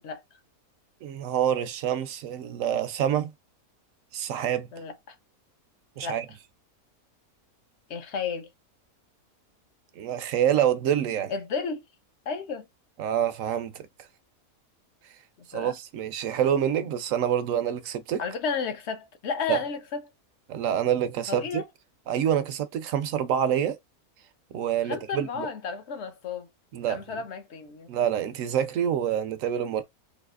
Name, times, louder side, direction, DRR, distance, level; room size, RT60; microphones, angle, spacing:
voice 1, 1.0-3.3 4.1-4.7 6.0-6.3 10.0-11.3 13.0-13.9 15.5-18.2 19.5-19.6 20.5-21.6 22.1-23.8 24.5-25.5 26.7-27.2 27.9-29.8, right 9 dB, 70° right, 0.9 m, -27 dB
voice 2, 4.7-5.1 6.0-6.2 7.9-8.5 11.3-11.8 12.3-12.7 15.5-15.8 18.2-20.0 21.3-21.7 24.8-26.5 26.9-27.9, left 5 dB, 55° left, 0.8 m, -32 dB
4.0 x 2.7 x 2.3 m
omnidirectional pair, 1.6 m